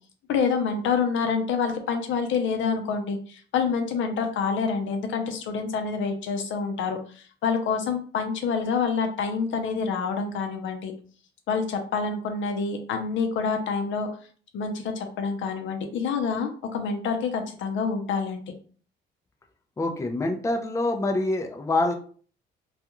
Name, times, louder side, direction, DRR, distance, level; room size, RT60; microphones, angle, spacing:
voice 1, 0.3-10.9 11.5-14.1 14.5-18.4, left 5 dB, 70° left, 5 dB, 0.6 m, -27 dB
voice 2, 19.8-21.9, left 2 dB, 15° left, 4 dB, 0.4 m, -25 dB
2.4 x 2.3 x 2.9 m, 0.43 s
cardioid pair, 90°, 20 cm